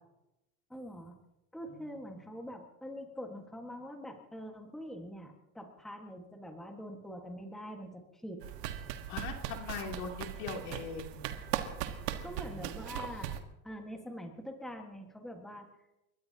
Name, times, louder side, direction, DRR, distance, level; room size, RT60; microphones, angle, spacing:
voice 1, 0.7-1.2 1.5-8.4 12.2-13.4 13.6-15.7, equal, ahead, 3 dB, 1.5 m, -44 dB
sound 1, 8.4-13.4, right 11 dB, 85° right, 1.6 m, -39 dB
voice 2, 9.1-11.2 12.3-12.6, left 5 dB, 75° left, 2 dB, 3.1 m, -41 dB
30.0 x 14.0 x 2.8 m, 0.93 s
supercardioid pair, 135°, 46 cm